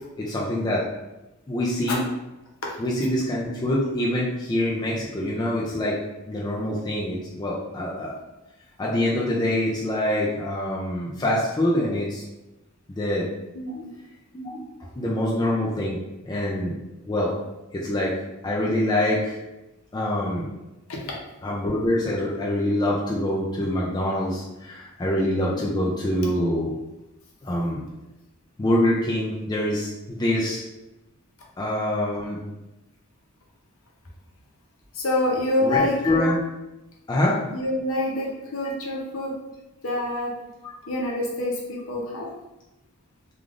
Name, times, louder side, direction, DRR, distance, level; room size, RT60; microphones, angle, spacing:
voice 1, 0.2-0.9 1.5-2.0 2.8-6.0 6.3-8.1 8.8-12.2 12.9-13.3 14.3-14.6 15.0-16.0 16.3-16.7 17.1-17.3 17.7-18.1 18.4-19.4 19.9-20.5 21.4-26.7 27.4-27.8 28.6-30.6 31.6-32.4 35.6-36.4 37.1-37.4 38.6-38.7 40.6-40.7, left 1 dB, 20° left, -5 dB, 0.3 m, -25 dB
voice 2, 13.5-13.9 20.9-21.0 25.5-25.6 34.9-36.0 37.5-39.3 39.8-40.3 40.9-42.3, left 1 dB, 65° left, -2 dB, 0.7 m, -26 dB
3.3 x 2.4 x 2.4 m, 0.98 s
head